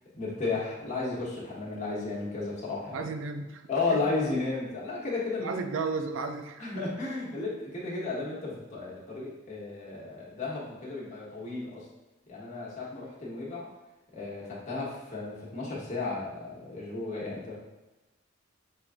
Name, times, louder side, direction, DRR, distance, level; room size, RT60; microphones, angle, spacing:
voice 1, 0.1-3.1 3.7-5.6 6.6-11.9 12.3-13.7 14.1-17.6, left 3 dB, 40° left, -5 dB, 1.0 m, -33 dB
voice 2, 2.9-3.6 3.9-4.0 5.4-6.8, right 4 dB, 80° right, 7 dB, 0.4 m, -34 dB
5.9 x 2.3 x 2.5 m, 1.1 s
head